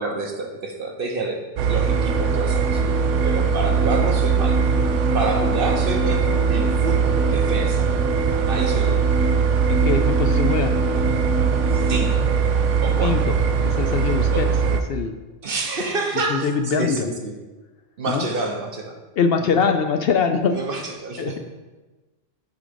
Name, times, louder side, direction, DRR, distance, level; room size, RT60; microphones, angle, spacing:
voice 1, 0.0-2.8 3.2-4.6 5.1-7.9 8.5-9.0 11.8-12.2 12.8-13.2 14.3-14.5 15.4-17.3 18.0-19.0 19.4-19.7 20.5-21.4, right 3 dB, 55° right, 2 dB, 1.0 m, -28 dB
sound 1, 1.6-14.8, right 6 dB, 85° right, 0.9 m, -20 dB
sound 2, 1.8-12.1, left 2 dB, 10° right, 0.8 m, -30 dB
voice 2, 9.7-10.7 13.0-13.3 13.6-15.1 16.3-17.1 18.1-18.2 19.2-20.6 21.2-21.3, left 6 dB, 65° left, 6 dB, 0.7 m, -23 dB
8.1 x 3.8 x 5.1 m, 1.2 s
omnidirectional pair, 1.2 m